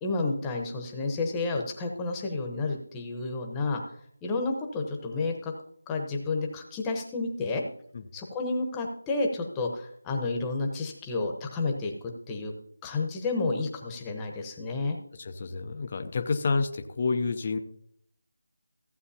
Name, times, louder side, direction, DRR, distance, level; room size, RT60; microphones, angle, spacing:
voice 1, 0.0-3.8 4.2-5.5 5.9-7.6 8.1-11.9 12.3-12.5 12.8-15.0, left 3 dB, 10° left, 1 dB, 1.0 m, -30 dB
voice 2, 15.1-17.6, left 4 dB, 30° left, 6 dB, 0.6 m, -29 dB
15.5 x 7.8 x 2.8 m, 0.67 s
figure-of-eight pair, 170°, 0 cm